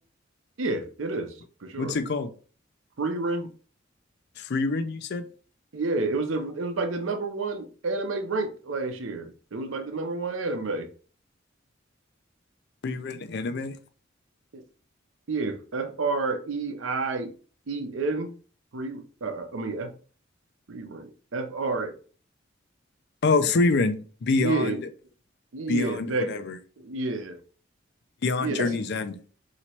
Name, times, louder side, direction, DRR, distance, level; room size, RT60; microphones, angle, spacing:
voice 1, 0.6-2.0 3.0-3.5 5.7-10.9 14.5-14.6 15.3-17.3 17.7-18.3 18.7-19.9 20.7-21.9 24.4-24.8 25.5-26.4 26.8-27.4 28.4-28.7, right 3 dB, 85° right, 0.7 m, -30 dB
voice 2, 1.8-2.3 4.4-5.3 12.8-13.8 23.2-24.9 25.7-26.6 28.2-29.2, left 3 dB, 60° left, 0.5 m, -26 dB
3.0 x 2.9 x 4.4 m
head